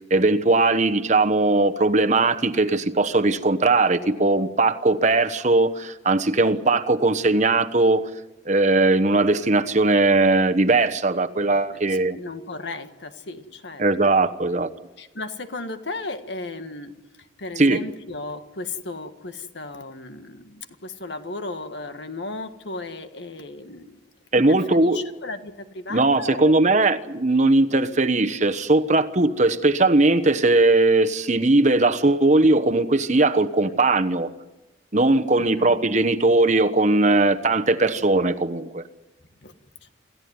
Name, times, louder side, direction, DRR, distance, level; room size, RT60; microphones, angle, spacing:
voice 1, 0.1-8.0 8.4-12.2 13.8-14.7 17.6-17.8 24.3-25.0 25.9-34.3 34.9-38.8, right 2 dB, 40° right, 1.1 m, -19 dB
voice 2, 11.4-14.2 15.0-24.1 24.3-26.7 35.3-35.8 37.9-38.1 39.4-39.5 39.8-39.9, left 2 dB, 70° left, 1.7 m, -36 dB
27.5 x 15.0 x 9.6 m
head